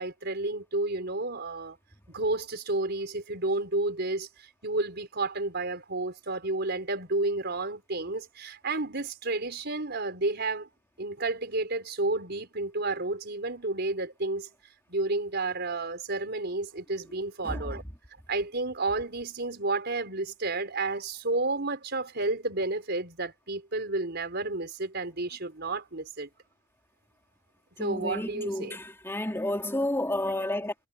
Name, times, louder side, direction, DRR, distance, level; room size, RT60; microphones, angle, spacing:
voice 1, 0.0-1.8 2.1-10.7 11.0-14.5 14.9-17.8 18.3-26.3 27.8-28.8 30.3-30.4, right 2 dB, 55° right, 5.2 m, -31 dB
voice 2, 27.8-30.7, left 1 dB, 15° left, 3.4 m, -31 dB
head